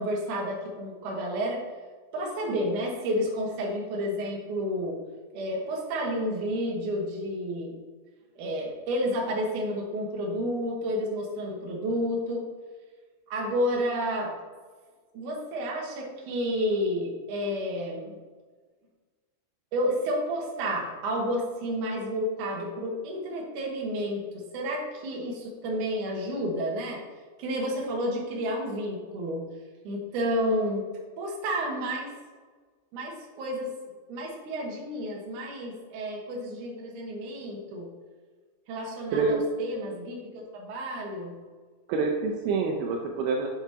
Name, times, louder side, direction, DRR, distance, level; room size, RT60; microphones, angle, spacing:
voice 1, 0.0-1.6 2.1-5.0 5.3-7.8 8.4-12.4 13.3-14.3 15.1-18.2 19.7-27.0 27.4-29.4 29.8-30.9 31.2-32.1 32.9-33.7 34.1-37.9 38.7-41.4, equal, 60° right, -2 dB, 2.2 m, -30 dB
voice 2, 41.9-43.5, right 4 dB, 85° right, 1 dB, 2.2 m, -26 dB
8.1 x 6.9 x 2.8 m, 1.5 s
omnidirectional pair, 5.2 m